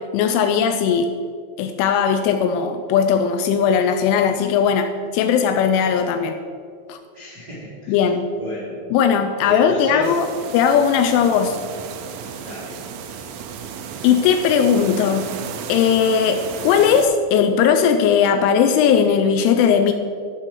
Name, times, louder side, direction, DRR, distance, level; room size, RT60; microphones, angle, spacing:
voice 1, 0.1-1.1 1.6-6.4 6.9-7.0 7.9-8.2 8.9-10.3 10.5-11.6 14.0-15.3 15.7-19.9, left 7 dB, 85° left, 6 dB, 2.9 m, -18 dB
voice 2, 7.1-8.0 8.3-8.8 9.4-10.1 12.4-12.8, right 1 dB, 65° right, -7 dB, 1.0 m, -31 dB
sound 1, 10.0-17.1, right 7 dB, 80° right, 3.1 m, -34 dB
15.0 x 6.1 x 4.6 m, 2.2 s
omnidirectional pair, 5.8 m